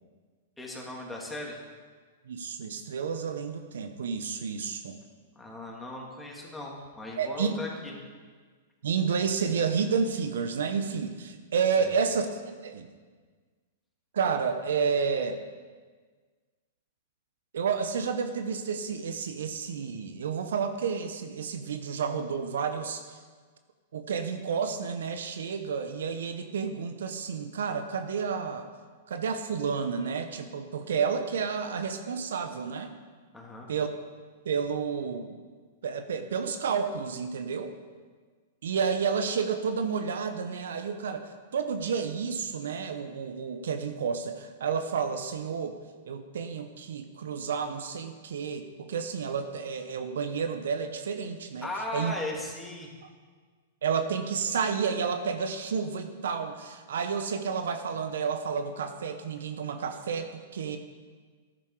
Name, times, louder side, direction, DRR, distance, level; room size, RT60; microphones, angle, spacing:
voice 1, 0.6-1.6 5.3-7.9 11.8-11.9 33.3-33.7 51.6-52.9, left 1 dB, 10° left, -2 dB, 3.0 m, -37 dB
voice 2, 2.3-5.0 7.2-7.6 8.8-12.3 12.6-12.9 14.1-15.4 17.5-23.2 23.9-28.7 29.1-32.9 33.7-33.9 34.4-35.3 35.8-37.7 38.6-45.8 46.1-51.7 51.9-52.1 53.8-60.8, right 6 dB, 70° right, 8 dB, 1.0 m, -30 dB
13.5 x 10.5 x 5.0 m, 1.5 s
hypercardioid pair, 110°, 0 cm